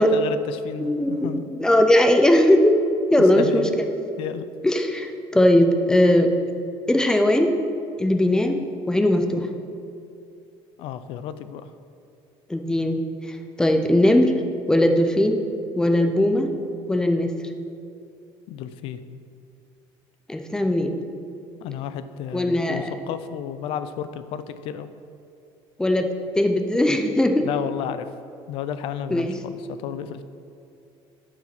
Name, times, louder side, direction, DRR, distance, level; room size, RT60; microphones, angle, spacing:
voice 1, 0.0-1.5 3.3-3.7 4.2-4.5 10.8-11.7 18.5-19.0 21.6-24.9 27.4-28.1 28.5-30.2, left 9 dB, 60° left, 12 dB, 0.5 m, -32 dB
voice 2, 0.8-2.8 3.1-3.9 4.6-6.3 6.9-7.5 8.0-8.6 8.9-9.5 12.5-14.3 14.7-15.4 15.7-16.5 16.9-17.3 20.3-21.0 22.3-23.0 25.8-26.1 26.4-27.5 29.1-29.3, left 1 dB, 5° left, 5 dB, 0.5 m, -19 dB
9.0 x 4.8 x 5.9 m, 2.6 s
cardioid pair, 160°, 10 cm